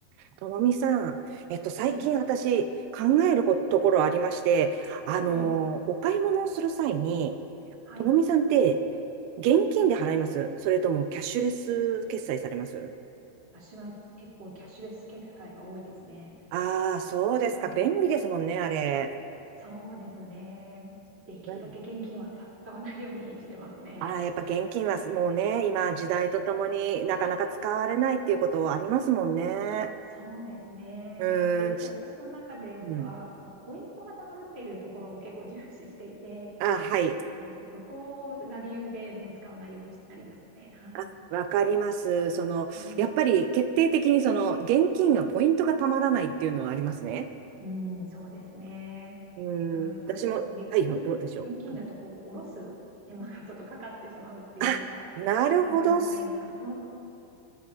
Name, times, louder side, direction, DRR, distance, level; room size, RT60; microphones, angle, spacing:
voice 1, 0.4-2.7 2.9-7.3 8.0-8.8 9.4-12.9 16.5-19.1 21.5-21.6 24.0-29.9 31.2-31.8 32.9-33.1 36.6-37.2 41.0-41.1 41.3-47.3 49.4-51.2 54.6-54.8 55.2-56.0, right 8 dB, 85° right, 8 dB, 2.6 m, -26 dB
voice 2, 13.5-16.3 17.5-17.9 19.6-20.9 21.3-24.4 30.1-36.5 37.3-41.1 42.7-43.0 47.6-49.2 49.7-51.1 51.4-52.7 53.1-56.7, equal, 20° right, -5 dB, 2.1 m, -42 dB
22.5 x 13.0 x 2.4 m, 2.9 s
omnidirectional pair, 4.6 m